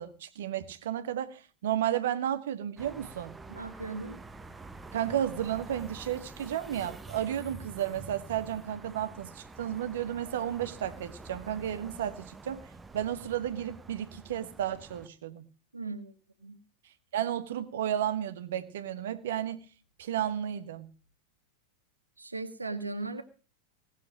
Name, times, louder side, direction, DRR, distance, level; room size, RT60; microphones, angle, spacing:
voice 1, 0.0-3.4 4.9-12.7 12.9-15.4 17.1-19.6 20.0-20.9, right 10 dB, 60° right, 1.4 m, -33 dB
sound 1, 2.8-15.1, right 3 dB, 10° right, 0.9 m, -47 dB
voice 2, 3.5-4.2 15.7-16.1 16.4-16.6 22.2-23.2, right 3 dB, 80° right, 1.3 m, -37 dB
18.5 x 6.6 x 7.5 m
figure-of-eight pair, 90°, 0 cm